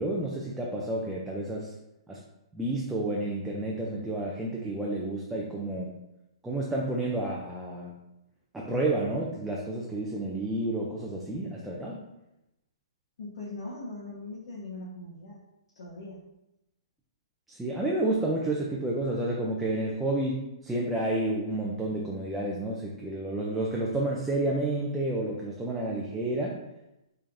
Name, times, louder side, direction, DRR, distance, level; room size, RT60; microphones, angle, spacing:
voice 1, 0.0-1.7 2.1-2.2 2.5-6.0 6.4-8.0 8.5-12.0 17.5-26.6, right 2 dB, 5° right, -4 dB, 0.4 m, -30 dB
voice 2, 13.2-15.4 15.7-16.2, left 2 dB, 65° left, -6 dB, 1.3 m, -40 dB
5.5 x 3.4 x 2.6 m, 0.90 s
hypercardioid pair, 160°, 3 cm